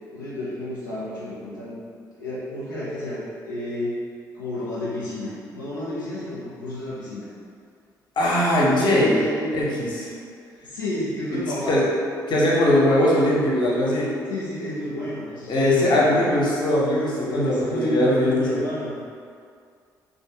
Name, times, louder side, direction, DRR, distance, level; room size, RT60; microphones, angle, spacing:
voice 1, 0.1-1.8 2.2-4.0 4.3-7.3 8.5-9.5 10.6-11.8 14.3-16.2 17.3-19.0, left 1 dB, 85° left, -11 dB, 0.4 m, -31 dB
voice 2, 8.2-9.2 9.5-10.1 11.7-11.8 12.3-14.1 15.5-18.6, left 1 dB, 50° left, -4 dB, 0.7 m, -20 dB
3.2 x 2.4 x 2.7 m, 2.2 s
figure-of-eight pair, 45°, 10 cm